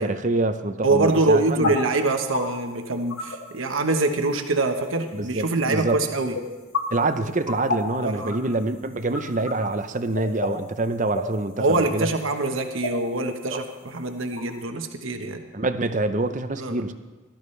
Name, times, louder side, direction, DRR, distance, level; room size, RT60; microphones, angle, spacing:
voice 1, 0.0-1.7 5.1-6.0 6.9-12.1 13.5-13.6 15.5-16.9, right 2 dB, 40° right, 9 dB, 0.7 m, -26 dB
voice 2, 0.8-6.4 8.0-8.4 11.6-15.4 16.6-16.8, right 2 dB, 80° right, 5 dB, 1.2 m, -24 dB
sound 1, 1.0-14.6, left 3 dB, 80° left, 2.6 m, -33 dB
17.5 x 13.5 x 3.3 m, 1.3 s
head